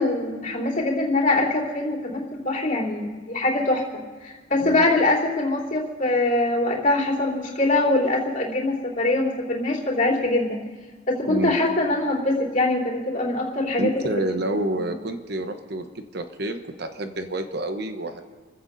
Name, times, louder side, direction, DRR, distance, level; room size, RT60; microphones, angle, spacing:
voice 1, 0.0-3.8 4.2-10.6 11.1-14.1 14.8-14.9, left 2 dB, 45° left, -5 dB, 3.5 m, -23 dB
voice 2, 11.3-11.6 13.8-18.3, right 1 dB, 55° right, 7 dB, 1.0 m, -29 dB
30.0 x 15.5 x 2.7 m, 1.4 s
head